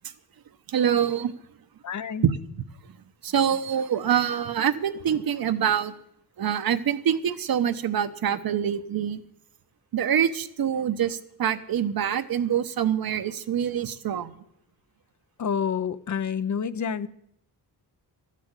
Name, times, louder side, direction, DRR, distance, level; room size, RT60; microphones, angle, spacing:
voice 1, 0.7-1.3 2.2-2.4 3.2-5.9 6.4-9.2 9.9-14.3, right 9 dB, 60° right, 11 dB, 0.9 m, -25 dB
voice 2, 1.8-2.2 15.4-17.1, left 7 dB, 45° left, 14 dB, 0.6 m, -28 dB
13.0 x 8.4 x 8.1 m, 0.73 s
wide cardioid pair, 125°, 40 cm